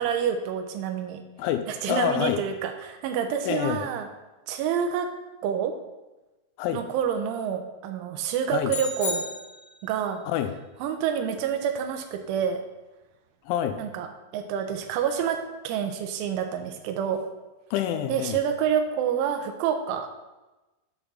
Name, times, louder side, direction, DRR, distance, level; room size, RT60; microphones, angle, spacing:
voice 1, 0.0-1.2 1.7-4.1 4.5-5.1 5.4-5.7 6.7-9.3 9.8-10.2 10.8-12.6 13.8-14.1 14.3-15.4 15.6-17.2 18.1-20.2, right 8 dB, 90° right, 5 dB, 3.2 m, -28 dB
voice 2, 1.4-2.4 3.4-3.9 6.6-6.8 8.5-8.7 10.3-10.6 13.5-13.8 17.7-18.4, left 10 dB, 85° left, 9 dB, 2.9 m, -27 dB
sound 1, 8.7-10.0, left 3 dB, 50° left, 1.2 m, -33 dB
8.5 x 4.0 x 6.2 m, 1.1 s
omnidirectional pair, 5.4 m